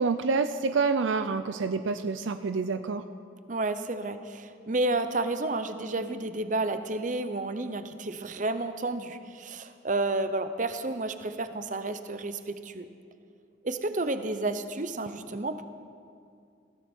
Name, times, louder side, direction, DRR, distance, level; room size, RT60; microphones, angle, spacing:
voice 1, 0.0-3.0, right 4 dB, 70° right, 9 dB, 0.5 m, -27 dB
voice 2, 3.5-12.9 13.6-15.6, right 2 dB, 40° right, 10 dB, 0.8 m, -31 dB
20.0 x 16.0 x 4.5 m, 2.4 s
head